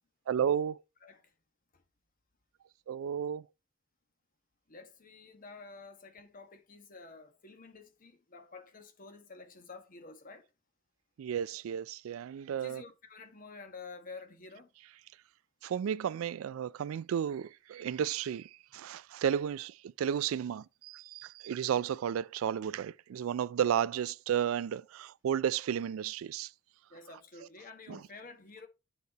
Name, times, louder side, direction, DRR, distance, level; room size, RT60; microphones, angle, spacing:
voice 1, 0.3-0.8 2.9-3.4 11.2-12.8 15.6-26.5 27.9-28.0, right 9 dB, 85° right, 0.3 m, -33 dB
voice 2, 4.7-10.5 12.6-14.7 26.9-28.7, left 4 dB, 45° left, 1.2 m, -50 dB
8.4 x 4.1 x 3.9 m
head